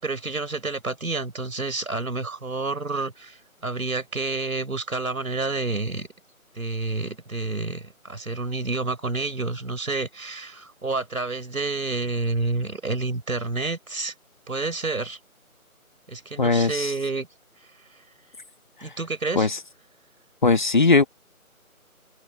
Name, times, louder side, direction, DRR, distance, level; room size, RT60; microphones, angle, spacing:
voice 1, 0.0-6.1 6.5-14.1 14.5-15.2 16.1-17.3 18.8-19.5, right 3 dB, 70° right, 6.2 m, -29 dB
voice 2, 16.4-16.9 19.3-19.6 20.4-21.0, left 3 dB, 35° left, 2.3 m, -19 dB
figure-of-eight pair, 170°, 43 cm